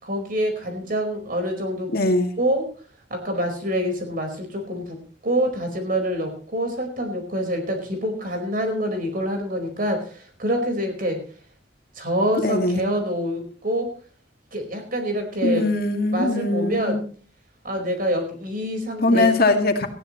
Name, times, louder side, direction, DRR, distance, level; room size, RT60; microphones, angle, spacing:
voice 1, 0.0-1.9 2.4-2.6 3.1-5.0 5.2-11.2 11.9-13.9 14.5-15.6 16.1-17.0 17.6-19.5, equal, 50° right, 5 dB, 4.7 m, -26 dB
voice 2, 1.9-2.3 12.4-12.8 15.4-17.0 19.0-19.9, left 2 dB, 55° left, 5 dB, 2.3 m, -21 dB
19.0 x 15.0 x 3.1 m, 0.40 s
head